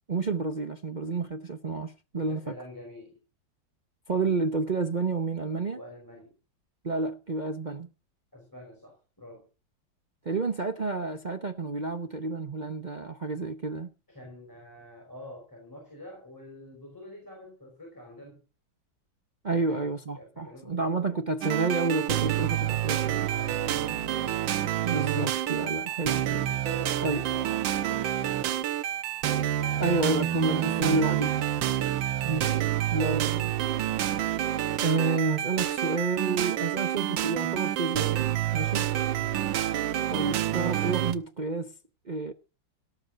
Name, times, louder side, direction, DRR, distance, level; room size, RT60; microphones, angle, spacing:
voice 1, 0.1-2.5 4.1-5.8 6.8-7.9 10.2-13.9 19.4-23.3 24.8-26.5 27.0-27.2 29.8-31.3 32.2-32.5 32.9-33.5 34.8-38.9 40.1-41.7 42.1-42.3, right 3 dB, 55° right, 0.5 m, -30 dB
voice 2, 2.1-3.2 5.7-6.4 8.3-9.5 14.1-18.4 19.5-21.1 23.2-24.5 26.3-28.9 29.6-30.3 31.7-33.2 39.1-39.6, left 1 dB, 10° left, 5.2 m, -47 dB
sound 1, 21.4-41.2, right 12 dB, 75° right, 1.6 m, -28 dB
18.0 x 6.5 x 6.6 m
omnidirectional pair, 2.1 m